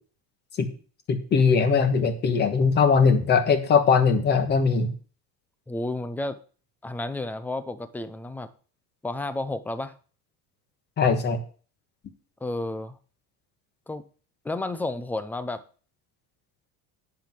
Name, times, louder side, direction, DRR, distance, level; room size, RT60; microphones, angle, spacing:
voice 1, 1.1-4.9 11.0-11.4, left 5 dB, 25° left, 9 dB, 1.4 m, -20 dB
voice 2, 5.7-6.4 6.8-8.5 9.0-9.9 12.4-13.0 13.9-14.0 14.4-15.6, left 2 dB, 5° left, 13 dB, 0.4 m, -31 dB
10.0 x 5.9 x 7.4 m, 0.40 s
cardioid pair, 175°, 37 cm